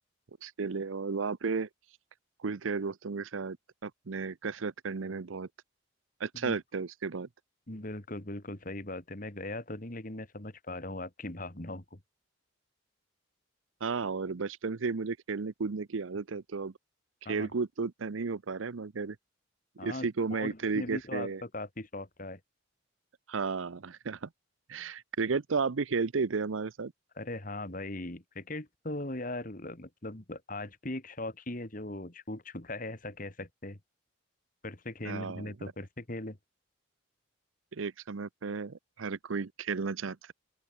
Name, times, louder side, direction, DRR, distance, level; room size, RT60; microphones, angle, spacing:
voice 1, 0.4-1.7 2.4-3.6 3.8-5.5 6.2-7.3 13.8-16.7 17.3-19.2 19.8-21.4 23.3-24.3 24.7-26.9 35.0-35.5 37.7-40.3, right 4 dB, 90° right, 0.7 m, -33 dB
voice 2, 7.7-12.0 17.3-17.5 19.8-22.4 27.2-33.8 34.6-36.4, left 2 dB, 45° left, 2.4 m, -39 dB
open air
head